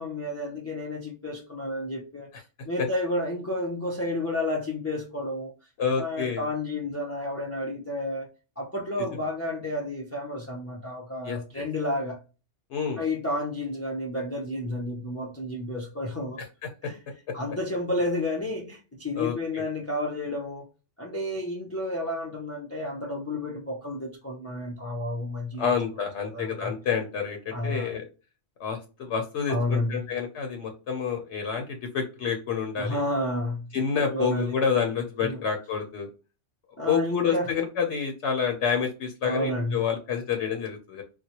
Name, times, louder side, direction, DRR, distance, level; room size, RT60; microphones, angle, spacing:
voice 1, 0.0-2.3 2.6-5.5 6.0-8.3 8.6-12.2 13.0-16.4 16.8-17.0 17.3-20.7 21.0-25.7 26.2-26.7 27.5-28.0 29.5-30.1 32.8-34.6 35.2-35.4 36.8-37.5 39.2-39.9, left 1 dB, 20° left, 0.4 m, -31 dB
voice 2, 5.8-6.4 11.2-11.6 12.7-13.0 19.2-19.6 25.6-28.0 28.6-33.0 33.7-36.1 36.9-41.0, left 6 dB, 70° left, 1.0 m, -28 dB
4.1 x 2.1 x 2.8 m
omnidirectional pair, 1.2 m